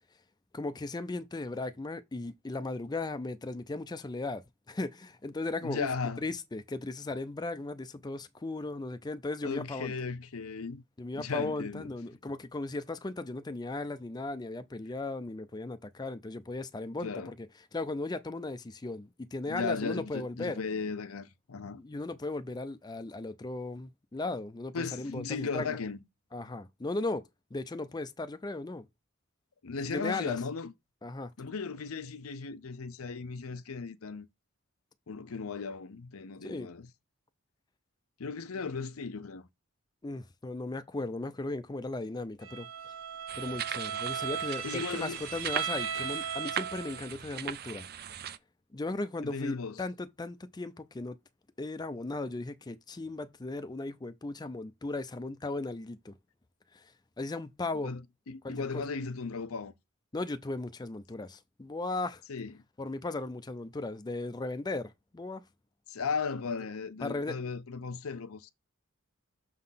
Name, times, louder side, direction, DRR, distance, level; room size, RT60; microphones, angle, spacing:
voice 1, 0.5-4.4 4.7-5.9 6.2-9.9 11.0-17.5 17.7-20.6 21.8-25.8 26.3-28.9 29.9-30.4 31.0-31.3 36.4-36.7 40.0-42.7 43.4-47.9 48.7-51.2 51.6-56.1 56.7-56.9 57.2-57.9 58.4-58.8 60.1-62.2 62.8-65.4 67.0-67.4, left 2 dB, 20° left, 0.5 m, -37 dB
voice 2, 5.6-6.2 9.4-10.8 11.1-11.9 17.0-17.3 19.5-21.8 24.7-26.0 29.6-30.7 31.4-34.3 35.1-36.9 38.2-39.5 44.6-45.2 49.2-49.8 57.8-58.0 58.3-59.8 62.3-62.6 65.9-68.5, left 5 dB, 90° left, 0.7 m, -36 dB
Bowed string instrument, 42.4-47.1, right 8 dB, 70° right, 0.9 m, -37 dB
sound 1, 43.3-48.4, right 9 dB, 50° right, 0.5 m, -39 dB
6.3 x 3.8 x 5.7 m
head